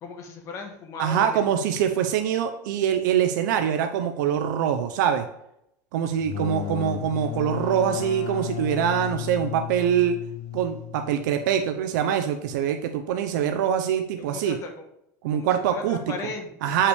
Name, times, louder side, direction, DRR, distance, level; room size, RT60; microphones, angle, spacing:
voice 1, 0.0-1.4 14.2-14.7 15.3-16.8, left 4 dB, 30° left, 3 dB, 1.3 m, -37 dB
voice 2, 1.0-5.3 5.9-10.2 10.5-14.6 15.2-16.0 16.6-16.9, right 9 dB, 75° right, 6 dB, 0.7 m, -24 dB
sound 1, 6.1-11.7, left 12 dB, 65° left, 0.8 m, -34 dB
8.2 x 5.6 x 3.5 m, 0.77 s
supercardioid pair, 165°, 10 cm